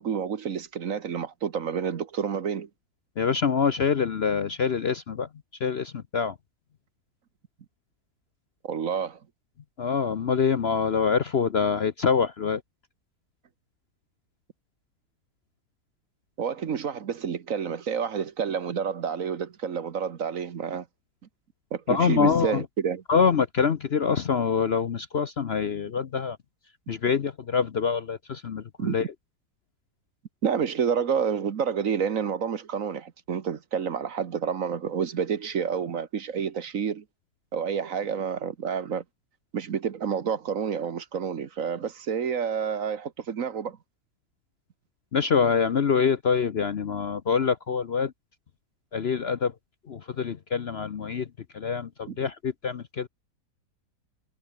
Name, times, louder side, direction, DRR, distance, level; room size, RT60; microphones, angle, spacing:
voice 1, 0.0-2.7 8.6-9.2 16.4-20.9 21.7-23.0 28.8-29.1 30.4-37.0 37.5-39.0 39.5-43.8 52.1-52.2, right 7 dB, 55° right, 1.5 m, -29 dB
voice 2, 3.2-5.3 5.6-6.3 9.8-12.6 21.9-22.6 23.1-26.4 26.9-29.0 45.1-48.1 48.9-49.5 49.9-51.3 51.5-53.1, left 6 dB, 50° left, 0.9 m, -25 dB
omnidirectional pair, 1.7 m